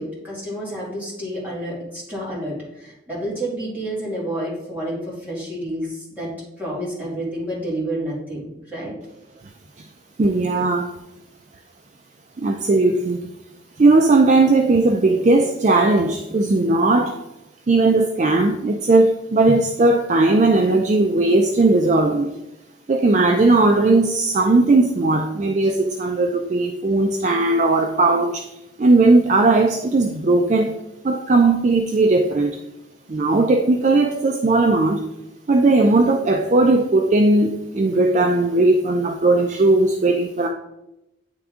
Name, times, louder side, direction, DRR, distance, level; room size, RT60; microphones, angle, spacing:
voice 1, 0.0-6.3 6.6-8.9, right 1 dB, 10° right, -7 dB, 2.3 m, -29 dB
voice 2, 10.2-10.9 12.4-13.2 13.8-17.2 17.7-22.3 22.9-28.3 28.8-30.8 31.0-32.5 33.1-35.0 35.5-40.5, right 2 dB, 40° right, 4 dB, 0.4 m, -17 dB
9.1 x 3.4 x 3.6 m, 0.90 s
head